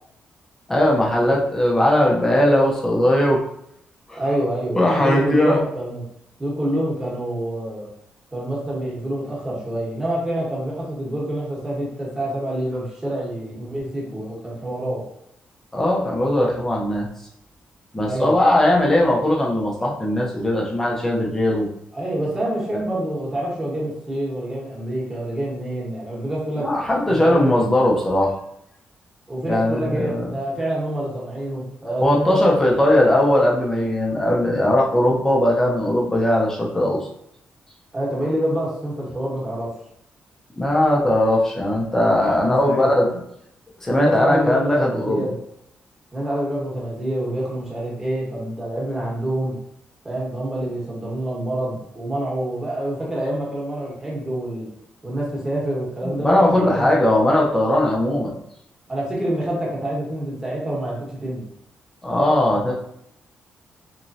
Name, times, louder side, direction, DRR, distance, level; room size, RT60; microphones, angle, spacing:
voice 1, 0.7-3.4 4.1-4.2 4.7-5.6 15.7-17.1 17.9-21.7 26.6-28.3 29.5-30.3 32.0-37.0 40.6-43.1 43.8-45.2 56.0-58.3 62.0-62.7, left 1 dB, 10° left, -2 dB, 0.7 m, -19 dB
voice 2, 4.1-6.0 6.4-7.9 8.3-15.0 18.0-18.3 21.9-26.7 27.1-27.6 29.3-32.4 37.9-39.7 42.4-43.1 43.9-45.3 46.1-49.5 50.0-54.7 55.0-56.9 58.9-61.5, right 1 dB, 15° right, -5 dB, 1.2 m, -27 dB
3.5 x 3.1 x 2.7 m, 0.76 s
wide cardioid pair, 165°, 4 cm